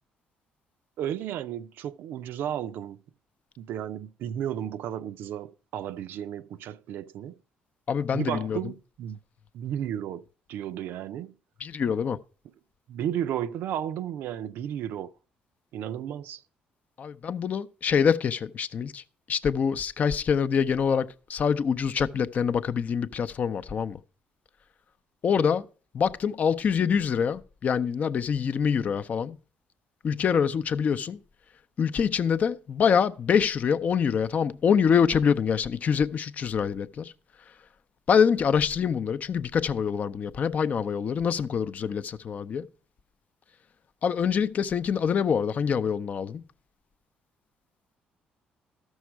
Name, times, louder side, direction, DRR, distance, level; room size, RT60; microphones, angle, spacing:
voice 1, 1.0-3.0 3.6-7.4 8.1-9.2 9.5-11.3 12.9-15.1 15.7-16.4, right 10 dB, 75° right, 0.5 m, -33 dB
voice 2, 7.9-8.6 11.6-12.2 17.0-19.0 19.3-24.0 25.2-25.6 25.9-29.4 30.0-31.2 31.8-37.1 38.1-42.7 44.0-46.4, left 7 dB, 45° left, 0.5 m, -25 dB
13.0 x 6.3 x 4.5 m
cardioid pair, 105°, 3 cm